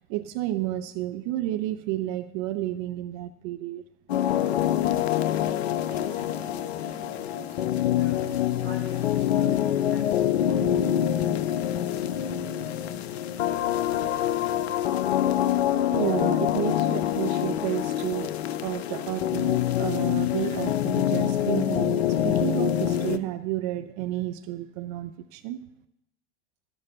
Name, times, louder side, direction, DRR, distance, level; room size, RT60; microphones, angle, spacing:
voice 1, 0.0-3.8 15.9-25.6, right 14 dB, 35° right, 12 dB, 0.4 m, -31 dB
sound 1, 4.1-23.2, left 11 dB, 60° left, 0.7 m, -25 dB
voice 2, 5.9-12.2 16.5-16.8 20.4-20.5, right 2 dB, 65° right, -3 dB, 4.5 m, -47 dB
15.0 x 12.0 x 2.8 m, 0.84 s
figure-of-eight pair, 80°, 36 cm